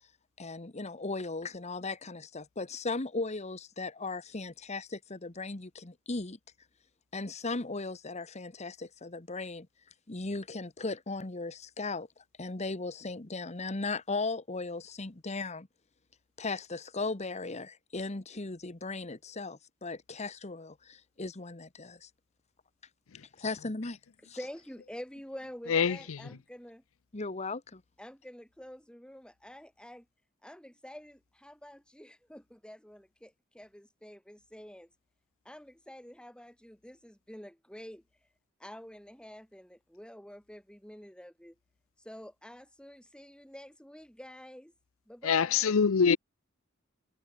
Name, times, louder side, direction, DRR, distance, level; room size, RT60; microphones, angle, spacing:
voice 1, 0.4-6.4 7.1-9.7 10.1-12.1 12.4-15.7 16.4-22.1 23.4-24.0 24.3-24.4 27.1-27.8, left 3 dB, 30° left, 1.2 m, -37 dB
voice 2, 24.4-26.8 28.0-30.1 30.4-34.9 35.4-38.0 38.6-41.5 42.0-44.7 45.1-45.8, equal, 5° left, 6.7 m, -48 dB
voice 3, 25.7-26.2 45.2-46.2, left 6 dB, 70° left, 0.6 m, -25 dB
head